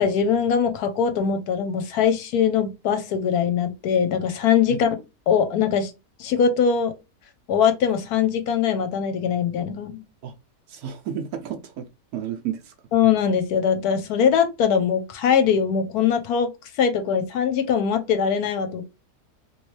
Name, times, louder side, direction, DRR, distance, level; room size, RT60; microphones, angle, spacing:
voice 1, 0.0-4.9 5.3-5.9 6.2-6.9 7.5-9.9 12.9-16.5 16.8-18.8, left 7 dB, 70° left, 1.1 m, -21 dB
voice 2, 10.7-11.9 12.1-12.7, right 9 dB, 70° right, 1.0 m, -32 dB
3.1 x 2.9 x 3.1 m
omnidirectional pair, 1.8 m